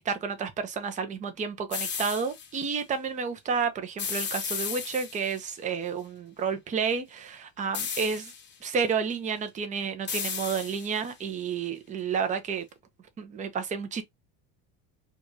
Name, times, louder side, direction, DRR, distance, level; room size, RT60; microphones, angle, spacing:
voice 1, 0.0-8.3 8.6-12.7 13.2-14.0, right 6 dB, 15° right, 0.4 m, -30 dB
sound 1, 1.7-2.5 4.0-5.4 7.7-8.5 10.1-11.1, left 6 dB, 25° left, 0.8 m, -34 dB
4.5 x 2.3 x 2.5 m
cardioid pair, 145°, 47 cm